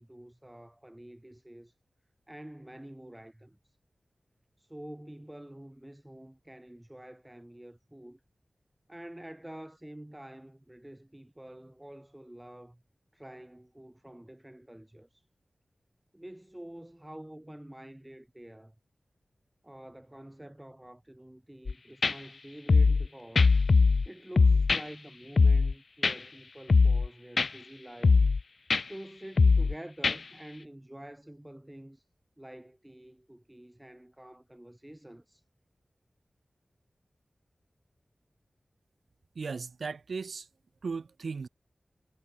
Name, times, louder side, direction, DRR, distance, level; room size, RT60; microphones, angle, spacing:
voice 1, 0.0-1.8 2.3-3.8 4.6-8.2 8.9-12.8 13.1-15.3 16.1-18.7 19.6-23.6 24.0-28.2 28.9-32.1 32.4-35.4, right 1 dB, 10° right, 7.9 m, -48 dB
sound 1, 21.7-21.8 22.0-22.1 22.7-23.1 23.4-24.1 24.4-24.8 25.4-25.7 26.0-26.1 26.7-27.1 27.4-27.5 28.0-28.4 28.7-28.8 29.4-29.7 30.0-30.2, left 4 dB, 70° left, 0.3 m, -21 dB
voice 2, 39.4-40.5 40.8-41.5, right 4 dB, 90° right, 1.9 m, -36 dB
wide cardioid pair, 75°, 0 cm